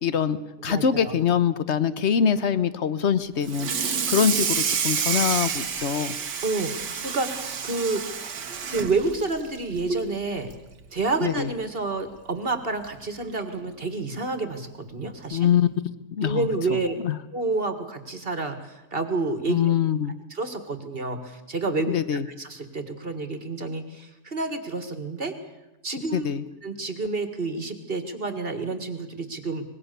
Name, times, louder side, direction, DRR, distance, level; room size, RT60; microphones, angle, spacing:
voice 1, 0.0-3.7 4.1-6.1 11.2-11.5 15.3-15.7 16.2-16.5 17.0-17.1 19.5-20.1 21.9-22.2 26.1-26.4, left 8 dB, 45° left, 14 dB, 1.1 m, -23 dB
voice 2, 0.6-1.1 6.4-8.2 8.7-10.5 10.9-15.5 16.2-17.0 17.3-19.7 20.3-25.3 25.8-26.3 26.6-29.6, right 3 dB, 35° right, 9 dB, 2.0 m, -29 dB
Water tap faucet / Sink (filling or washing), 3.4-10.1 10.5-10.7 11.1-11.2 11.6-11.7 12.8-12.9 13.4-13.6, right 7 dB, 80° right, 2.0 m, -29 dB
25.0 x 20.5 x 6.8 m, 0.96 s
omnidirectional pair, 1.8 m